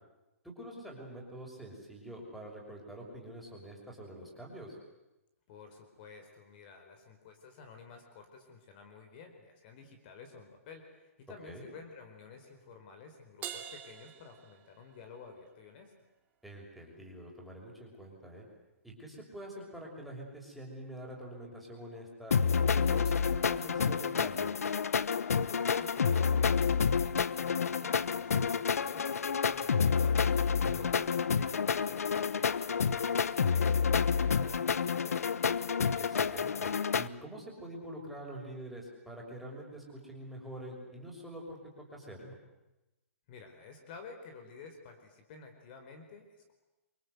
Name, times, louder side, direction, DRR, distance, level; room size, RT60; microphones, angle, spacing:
voice 1, 0.4-4.8 11.4-11.7 16.4-18.4 18.8-22.4 22.6-24.6 30.6-31.0 36.1-42.4, right 1 dB, ahead, -3 dB, 6.4 m, -46 dB
voice 2, 5.5-16.0 25.2-35.5 43.3-46.5, left 5 dB, 40° left, 6 dB, 4.5 m, -52 dB
Crash cymbal, 13.4-15.1, right 10 dB, 20° right, 2.5 m, -44 dB
sound 1, 22.3-37.1, left 6 dB, 85° left, 1.0 m, -29 dB
28.5 x 24.0 x 8.2 m, 1.0 s
hypercardioid pair, 145°, 8 cm